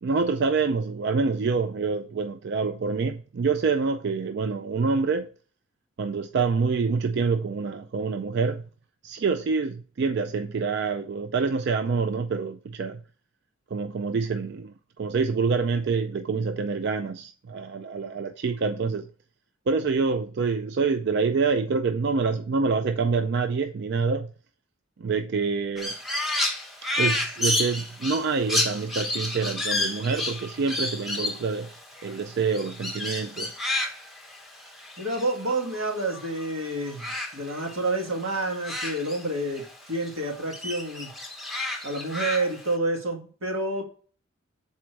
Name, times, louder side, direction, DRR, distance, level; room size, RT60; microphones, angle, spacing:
voice 1, 0.0-5.3 6.0-8.6 9.0-13.0 13.7-19.1 19.7-24.3 25.0-26.0 27.0-33.6, right 4 dB, 55° right, 0.4 m, -26 dB
Crow, 25.8-36.5 36.7-39.7 40.0-42.7, left 2 dB, ahead, 0.9 m, -31 dB
voice 2, 35.0-37.1 37.3-41.1 41.8-43.8, right 2 dB, 85° right, 1.8 m, -29 dB
7.5 x 4.3 x 4.5 m
head